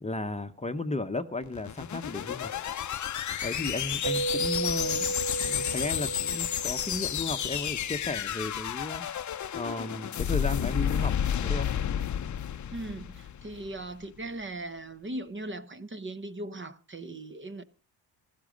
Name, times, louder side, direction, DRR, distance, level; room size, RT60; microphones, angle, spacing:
voice 1, 0.0-2.5 3.4-9.0 9.5-11.1 11.4-11.7, left 2 dB, 15° left, 0.9 m, -34 dB
sound 1, 1.4-13.8, left 9 dB, 40° left, 0.7 m, -31 dB
Mallet percussion, 4.0-7.8, right 3 dB, 65° right, 1.3 m, -34 dB
voice 2, 12.7-17.6, right 2 dB, 25° right, 1.0 m, -39 dB
14.5 x 12.5 x 5.1 m
cardioid pair, 80°, 44 cm